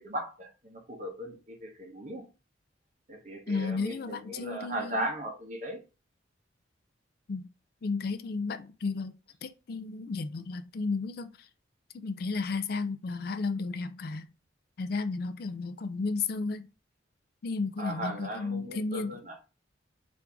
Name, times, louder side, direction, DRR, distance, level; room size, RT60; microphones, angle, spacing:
voice 1, 0.0-2.3 3.1-5.8 17.8-19.3, right 1 dB, 40° right, 0.9 m, -37 dB
voice 2, 3.5-5.1 7.3-7.5 7.8-9.1 9.4-11.3 12.0-14.3 14.8-16.7 17.4-19.2, left 4 dB, 50° left, 0.4 m, -33 dB
4.5 x 2.6 x 3.5 m
head